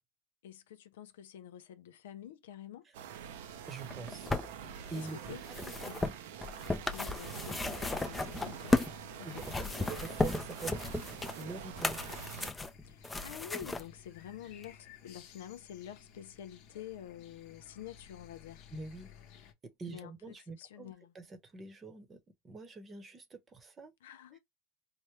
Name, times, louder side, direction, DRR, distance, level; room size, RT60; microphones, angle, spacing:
voice 1, 0.4-2.9 4.9-5.4 5.8-6.0 6.9-8.8 9.2-9.5 12.9-18.6 19.9-21.1 24.0-24.4, left 10 dB, 90° left, 0.7 m, -48 dB
sound 1, 2.9-12.5, right 8 dB, 80° right, 0.6 m, -46 dB
voice 2, 3.7-4.3 4.6-5.2 5.5-5.9 9.2-9.5 9.8-11.0 11.4-12.0 18.7-19.1 19.8-23.9, right 3 dB, 20° right, 0.9 m, -45 dB
sound 2, 3.8-9.0 9.3-13.8 14.6-14.7, left 2 dB, 10° left, 0.5 m, -35 dB
sound 3, 8.3-19.5, left 7 dB, 50° left, 0.9 m, -57 dB
4.4 x 2.1 x 3.1 m
supercardioid pair, 135°, 0 cm